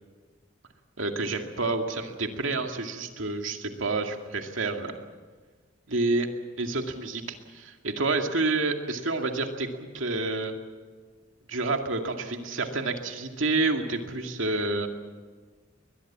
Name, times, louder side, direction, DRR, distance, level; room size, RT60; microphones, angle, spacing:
voice 1, 1.0-4.9 5.9-6.3 6.6-9.7 9.9-10.5 11.5-14.9, right 3 dB, 80° right, 4 dB, 2.3 m, -29 dB
22.0 x 20.5 x 7.5 m, 1.5 s
head